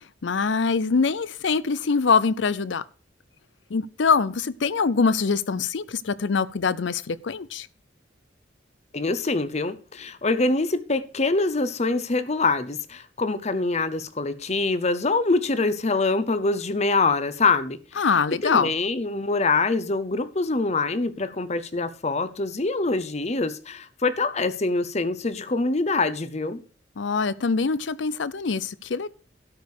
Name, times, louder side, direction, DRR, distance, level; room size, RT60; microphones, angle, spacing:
voice 1, 0.2-2.8 3.7-7.7 18.0-18.7 27.0-29.1, left 5 dB, 70° left, 0.6 m, -23 dB
voice 2, 8.9-17.8 18.4-26.6, left 3 dB, 35° left, 0.8 m, -24 dB
12.5 x 5.2 x 6.5 m
head